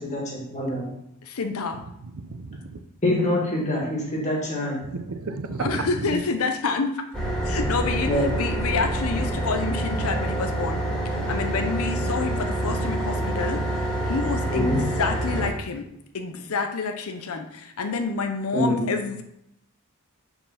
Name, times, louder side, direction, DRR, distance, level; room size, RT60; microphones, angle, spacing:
voice 1, 0.1-0.9 3.0-4.9 8.1-8.3 14.5-14.8 18.5-18.9, left 1 dB, 30° left, -3 dB, 2.1 m, -25 dB
voice 2, 1.2-1.8 5.6-7.0 7.4-13.6 14.1-15.8 16.1-19.2, left 4 dB, 75° left, 6 dB, 0.6 m, -28 dB
voice 3, 1.7-2.8 4.8-6.2, right 3 dB, 70° right, 8 dB, 0.6 m, -33 dB
sound 1, 7.1-15.5, right 1 dB, ahead, 2.1 m, -27 dB
5.2 x 4.8 x 5.7 m, 0.79 s
head